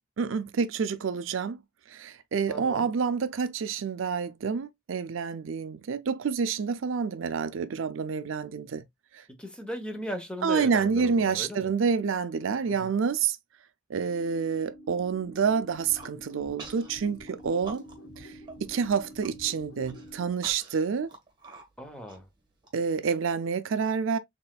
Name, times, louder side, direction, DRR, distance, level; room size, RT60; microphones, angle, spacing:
voice 1, 0.2-1.6 1.9-8.8 9.1-9.2 10.4-13.4 13.9-17.9 18.2-18.3 18.6-21.1 22.7-24.2, right 6 dB, 80° right, 0.5 m, -28 dB
voice 2, 2.5-2.8 9.4-11.7 12.8-12.9 21.8-22.3, equal, 5° left, 0.8 m, -37 dB
sound 1, 14.0-20.3, equal, 85° left, 1.1 m, -48 dB
Human voice, 15.8-16.1 16.6-16.9 17.3-18.2 18.5-18.6 19.0-19.3 19.8-22.7, right 3 dB, 20° right, 1.4 m, -46 dB
4.1 x 3.6 x 2.3 m
head